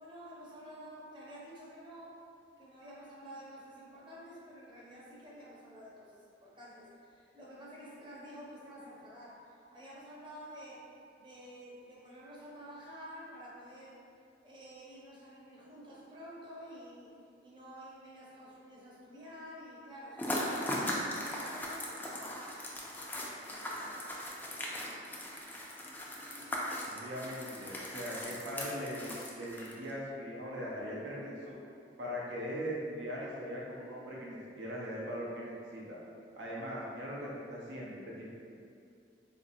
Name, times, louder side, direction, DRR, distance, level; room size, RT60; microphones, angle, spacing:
voice 1, 0.0-2.2 2.6-10.9 11.2-14.0 14.4-17.1 17.4-20.2 20.7-22.2 22.9-24.0 24.4-25.3, equal, 25° right, -6 dB, 0.7 m, -50 dB
sound 1, 20.2-29.9, left 1 dB, 10° left, 0.3 m, -39 dB
voice 2, 26.8-31.5 32.0-36.0 36.4-38.3, equal, 80° right, -5 dB, 0.6 m, -40 dB
3.9 x 2.6 x 2.6 m, 2.5 s
head